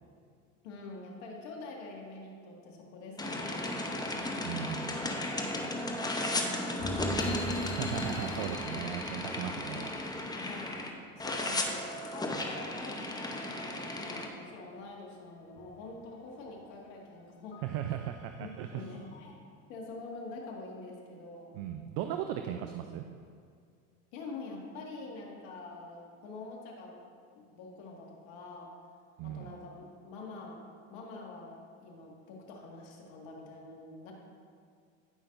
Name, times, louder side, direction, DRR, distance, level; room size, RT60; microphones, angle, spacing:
voice 1, 0.6-3.8 6.5-7.7 10.4-17.6 18.4-19.4 19.7-21.6 24.1-27.0 27.4-28.7 29.2-30.6 30.9-34.1, left 3 dB, 65° left, -1 dB, 2.0 m, -46 dB
sound 1, 3.2-10.9 11.2-14.3, left 1 dB, 10° left, 0.9 m, -35 dB
voice 2, 4.4-5.1 7.8-9.9 17.6-18.8 21.5-23.0 29.2-29.6, right 10 dB, 55° right, 6 dB, 0.6 m, -37 dB
sound 2, 6.8-10.8 11.2-14.4 14.7-14.9 15.3-16.3 16.7-16.8 17.5-19.3, equal, 30° left, 1.2 m, -43 dB
16.0 x 5.6 x 2.6 m, 2.2 s
hypercardioid pair, 95°, 40 cm